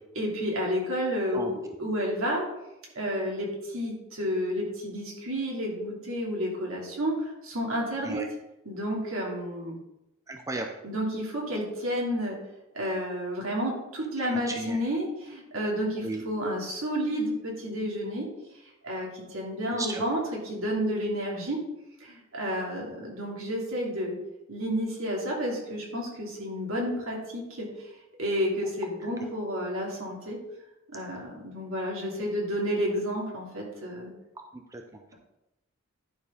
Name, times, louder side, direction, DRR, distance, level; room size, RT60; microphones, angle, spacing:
voice 1, 0.1-2.5 2.9-8.2 8.6-9.8 10.8-12.4 12.7-18.3 18.8-21.6 22.0-24.2 24.5-27.7 28.2-30.4 30.9-34.1, equal, 75° right, -2 dB, 2.8 m, -31 dB
voice 2, 10.3-10.7 14.2-14.8 16.0-16.2 19.8-20.0 34.4-34.8, right 2 dB, 15° right, 4 dB, 0.6 m, -35 dB
11.0 x 4.5 x 5.2 m, 0.91 s
head